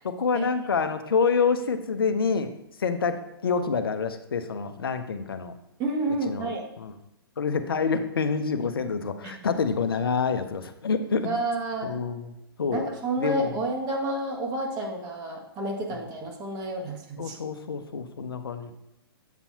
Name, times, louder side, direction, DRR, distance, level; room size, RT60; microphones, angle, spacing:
voice 1, 0.0-2.5 2.8-5.5 6.3-6.5 6.8-6.9 7.4-11.3 11.8-12.3 12.6-12.9 13.2-13.6 15.9-16.0 17.2-18.7, left 5 dB, 70° left, 8 dB, 0.8 m, -27 dB
voice 2, 5.8-6.6 9.2-9.3 11.2-12.0 12.7-17.4, right 2 dB, 30° right, 0 dB, 1.6 m, -30 dB
8.1 x 7.0 x 2.8 m, 0.87 s
figure-of-eight pair, 115°, 13 cm